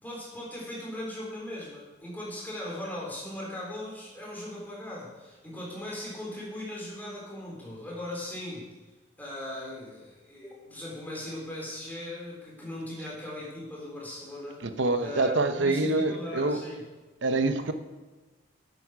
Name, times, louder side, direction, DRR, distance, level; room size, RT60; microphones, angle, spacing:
voice 1, 0.0-8.7 9.2-14.7 15.0-16.8, left 1 dB, 10° left, -5 dB, 3.7 m, -39 dB
voice 2, 14.6-16.7 17.2-17.7, right 2 dB, 65° right, 9 dB, 0.8 m, -26 dB
9.7 x 8.5 x 5.9 m, 1.3 s
head